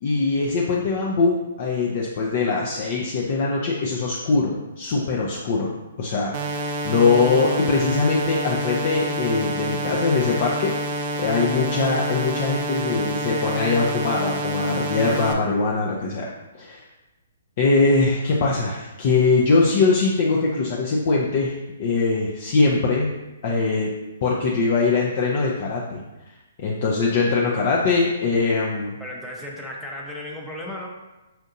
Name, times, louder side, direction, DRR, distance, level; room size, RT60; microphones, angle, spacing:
voice 1, 0.0-5.7 6.0-16.8 17.6-23.1 23.4-23.9 24.2-26.0 26.6-29.0, left 3 dB, 45° left, -3 dB, 0.5 m, -22 dB
sound 1, 6.3-15.3, right 1 dB, 40° right, 0.5 m, -28 dB
voice 2, 29.0-30.9, left 1 dB, 5° left, -3 dB, 0.7 m, -35 dB
5.7 x 2.6 x 2.5 m, 1.0 s
figure-of-eight pair, 130°, 0 cm